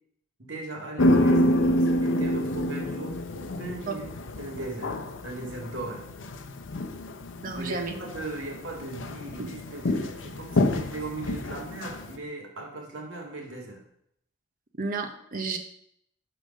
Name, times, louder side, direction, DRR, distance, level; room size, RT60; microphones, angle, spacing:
voice 1, 0.4-6.0 7.5-13.8, right 2 dB, 90° right, 0 dB, 1.9 m, -38 dB
sound 1, 1.0-12.2, left 1 dB, 75° left, 0.7 m, -28 dB
voice 2, 7.4-8.0 9.4-9.5 14.8-15.6, right 4 dB, 45° right, 6 dB, 0.7 m, -32 dB
5.6 x 5.0 x 6.4 m, 0.71 s
head